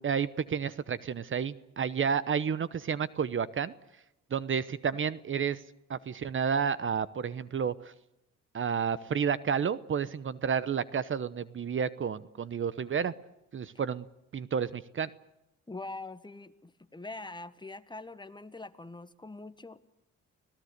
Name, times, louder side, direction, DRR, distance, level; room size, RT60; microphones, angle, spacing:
voice 1, 0.0-3.7 4.3-5.6 5.9-7.9 8.5-13.1 13.5-14.0 14.3-15.1, right 7 dB, 40° right, 17 dB, 0.9 m, -31 dB
voice 2, 15.7-19.8, left 2 dB, 15° left, 12 dB, 1.5 m, -43 dB
26.0 x 18.0 x 8.1 m, 0.85 s
cardioid pair, 90°, 30 cm